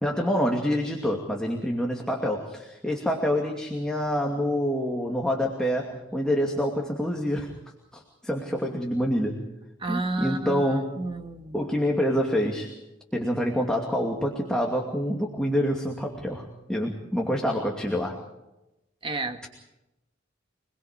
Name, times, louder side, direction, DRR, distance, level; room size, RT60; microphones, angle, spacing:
voice 1, 0.0-7.5 7.9-9.4 9.9-10.9 11.5-12.7 13.1-18.2, equal, 5° left, 0 dB, 2.5 m, -27 dB
voice 2, 9.8-11.6 19.0-19.5, right 2 dB, 30° right, 5 dB, 1.8 m, -31 dB
27.5 x 21.0 x 5.2 m, 0.94 s
head